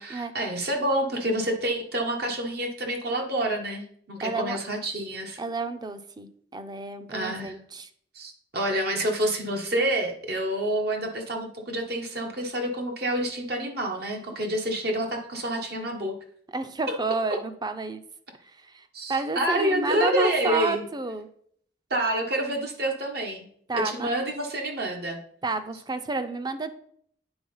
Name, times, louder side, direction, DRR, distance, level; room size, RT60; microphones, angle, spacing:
voice 1, 0.0-5.4 7.1-7.5 8.1-16.2 18.9-20.8 21.9-23.4 23.7-25.2, right 1 dB, 65° right, 2 dB, 1.5 m, -28 dB
voice 2, 4.2-4.6 5.4-7.9 16.5-18.0 18.7-18.8 19.1-21.3 23.7-24.1 25.4-26.7, right 3 dB, 25° right, 8 dB, 0.6 m, -30 dB
8.8 x 3.9 x 5.5 m, 0.62 s
head